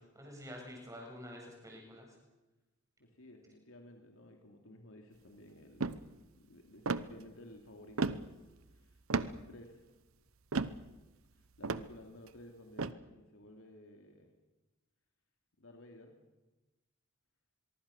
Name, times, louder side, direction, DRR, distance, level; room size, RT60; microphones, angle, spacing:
voice 1, 0.0-2.1, equal, 15° right, 0 dB, 7.7 m, -48 dB
voice 2, 3.0-5.9 6.4-8.4 8.7-9.8 11.6-14.3 15.6-16.2, left 1 dB, 70° left, 3 dB, 2.8 m, -55 dB
sound 1, 5.8-6.0 6.9-7.1 8.0-8.3 9.1-9.4 10.5-10.9 11.6-11.9 12.8-12.9, right 3 dB, 85° right, 1.0 m, -33 dB
24.0 x 23.0 x 7.2 m, 1.1 s
head